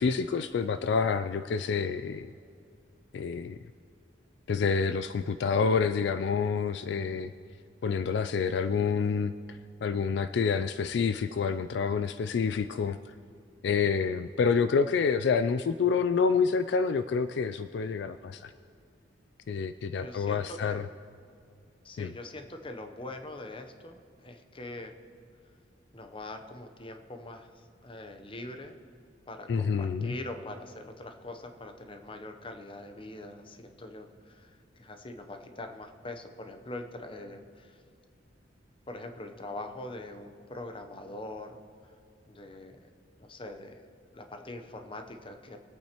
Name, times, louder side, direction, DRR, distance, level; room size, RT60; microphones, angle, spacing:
voice 1, 0.0-2.3 3.1-3.6 4.5-7.3 7.8-13.1 13.6-18.5 19.5-20.9 22.0-22.1 29.5-30.1, left 5 dB, 65° left, 11 dB, 0.3 m, -28 dB
voice 2, 20.0-20.8 21.8-24.9 25.9-27.5 27.8-28.8 29.3-34.5 34.8-37.8 38.9-41.6 42.3-42.8 43.2-43.8 44.1-45.6, left 2 dB, 30° left, 6 dB, 0.8 m, -43 dB
23.0 x 8.6 x 3.0 m, 2.4 s
head